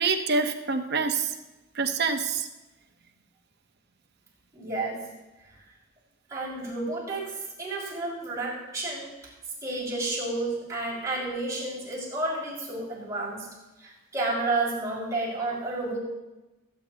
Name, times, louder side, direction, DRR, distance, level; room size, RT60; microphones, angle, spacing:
voice 1, 0.0-1.3 1.8-2.5, right 4 dB, 55° right, 5 dB, 1.0 m, -26 dB
voice 2, 4.5-5.0 6.3-9.1 9.6-13.5 13.8-16.0, right 2 dB, 15° right, -8 dB, 5.3 m, -31 dB
23.0 x 8.9 x 2.9 m, 1.0 s
head